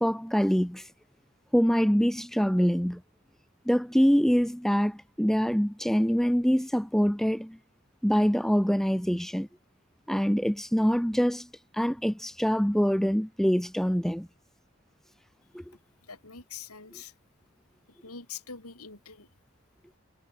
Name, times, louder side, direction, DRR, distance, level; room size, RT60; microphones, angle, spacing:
voice 1, 0.0-0.9 1.5-3.0 3.7-7.6 8.0-9.5 10.1-11.5 11.7-14.3 15.5-15.6, equal, ahead, 0.5 m, -25 dB
voice 2, 16.0-17.1 17.9-19.3, left 6 dB, 85° left, 6.1 m, -44 dB
head